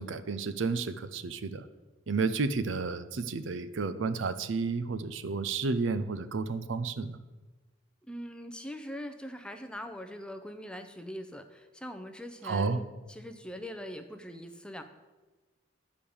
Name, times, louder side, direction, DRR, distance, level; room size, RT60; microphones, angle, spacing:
voice 1, 0.0-1.7 2.1-7.2 12.4-12.8, right 4 dB, 70° right, 12 dB, 0.5 m, -31 dB
voice 2, 8.1-14.8, equal, 5° left, 6 dB, 0.5 m, -42 dB
10.5 x 5.1 x 7.0 m, 1.2 s
head